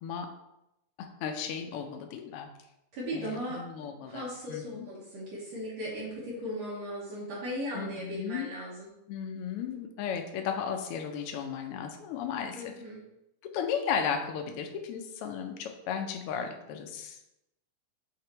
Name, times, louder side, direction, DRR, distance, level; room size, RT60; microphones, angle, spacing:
voice 1, 1.0-2.5 3.1-4.9 7.7-8.5 9.1-12.7 13.5-17.3, left 7 dB, 90° left, 4 dB, 1.2 m, -35 dB
voice 2, 2.9-3.7 4.0-8.9 12.5-13.0, equal, 65° right, -7 dB, 2.5 m, -37 dB
7.7 x 2.9 x 4.4 m, 0.87 s
omnidirectional pair, 3.4 m